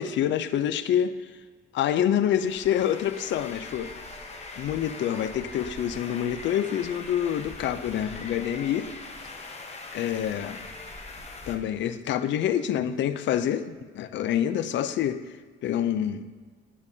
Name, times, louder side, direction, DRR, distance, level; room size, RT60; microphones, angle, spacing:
voice 1, 0.0-1.3 1.7-3.9 4.6-8.9 9.9-10.6 11.5-15.3 15.6-16.3, left 10 dB, 65° left, 12 dB, 0.4 m, -27 dB
sound 1, 2.3-11.6, left 3 dB, 35° left, 1.0 m, -41 dB
11.0 x 5.2 x 2.7 m, 1.5 s
cardioid pair, 90°, 20 cm